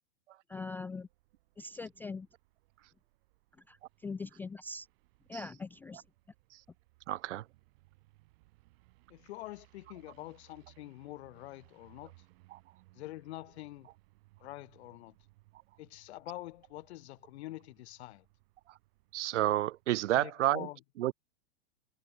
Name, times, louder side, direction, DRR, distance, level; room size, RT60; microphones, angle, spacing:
voice 1, 0.5-1.1 1.6-2.3 4.0-4.9 5.3-6.0, left 3 dB, 5° left, 0.4 m, -41 dB
sound 1, 0.9-19.9, right 21 dB, 55° right, 7.4 m, -66 dB
voice 2, 7.1-7.4 12.5-12.6 19.1-20.7 21.0-21.1, right 14 dB, 70° right, 1.4 m, -30 dB
voice 3, 9.1-12.1 12.9-13.9 14.4-15.1 15.8-18.2 20.1-20.8, left 17 dB, 60° left, 1.0 m, -46 dB
hypercardioid pair, 140°, 37 cm